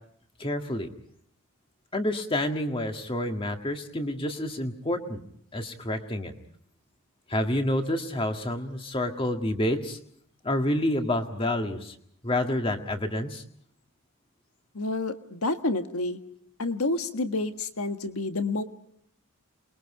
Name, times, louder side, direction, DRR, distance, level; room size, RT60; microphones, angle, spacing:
voice 1, 0.4-0.9 1.9-5.2 5.5-6.3 7.3-10.0 10.4-11.9 12.2-13.4, left 1 dB, 25° left, 5 dB, 1.8 m, -28 dB
voice 2, 14.7-16.2 16.6-18.6, left 2 dB, 75° left, 7 dB, 1.6 m, -29 dB
28.0 x 22.0 x 4.9 m, 0.67 s
head